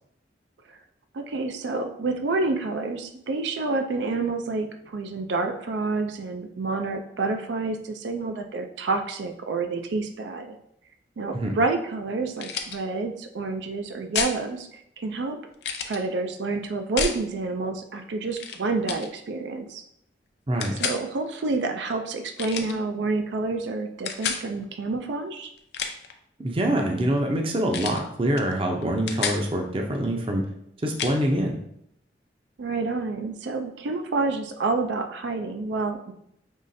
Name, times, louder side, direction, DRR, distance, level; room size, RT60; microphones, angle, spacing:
voice 1, 1.1-10.6 11.2-15.4 15.9-19.8 20.8-25.5 32.6-36.1, right 3 dB, 80° right, 6 dB, 0.4 m, -28 dB
sound 1, 12.4-12.8 14.1-14.4 15.6-16.0 17.0-17.2 18.3-18.6 18.9-19.1 20.6-21.0 22.4-22.8 24.1-24.4 25.6-26.1 27.7-28.0 28.4-28.5 28.8-29.4 31.0-31.2, left 6 dB, 70° left, 0.5 m, -30 dB
voice 2, 26.4-30.4 30.8-31.6, right 1 dB, 30° right, 2 dB, 0.5 m, -25 dB
5.4 x 3.1 x 2.6 m, 0.74 s
head